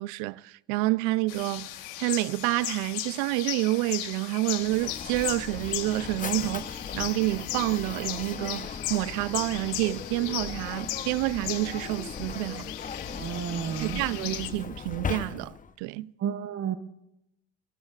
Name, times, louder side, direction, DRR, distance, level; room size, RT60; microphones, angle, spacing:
voice 1, 0.0-1.7 2.0-12.7 13.8-16.1, right 19 dB, 85° right, 0.5 m, -28 dB
sound 1, 1.3-14.5, left 15 dB, 80° left, 1.4 m, -37 dB
Mechanisms, 4.6-15.8, left 6 dB, 25° left, 0.9 m, -38 dB
voice 2, 13.1-14.0 16.2-16.8, right 9 dB, 45° right, 0.9 m, -31 dB
25.0 x 23.0 x 2.4 m
supercardioid pair, 90°, 31 cm